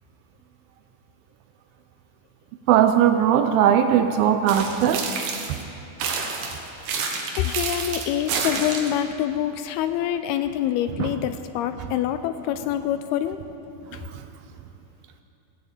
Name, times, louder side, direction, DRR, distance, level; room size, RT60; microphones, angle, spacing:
voice 1, 2.7-5.1 11.0-11.1 14.1-14.2, right 9 dB, 85° right, 7 dB, 2.0 m, -19 dB
sound 1, 4.5-5.6 6.0-9.0, right 5 dB, 70° right, 3.0 m, -29 dB
voice 2, 7.4-13.4 13.9-14.0, left 11 dB, 80° left, 10 dB, 2.3 m, -26 dB
18.0 x 8.6 x 8.3 m, 2.8 s
omnidirectional pair, 4.8 m